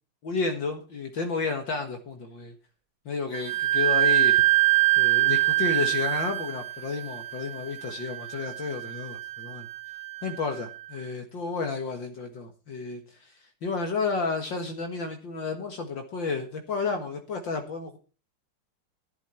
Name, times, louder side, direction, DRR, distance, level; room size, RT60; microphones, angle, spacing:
voice 1, 0.2-2.5 3.1-4.4 5.0-9.7 10.2-13.3 13.6-18.0, left 4 dB, 60° left, 5 dB, 2.2 m, -31 dB
Wind instrument woodwind instrument, 3.3-10.8, right 15 dB, 50° right, 1.1 m, -25 dB
12.5 x 11.5 x 4.3 m, 0.34 s
omnidirectional pair, 2.4 m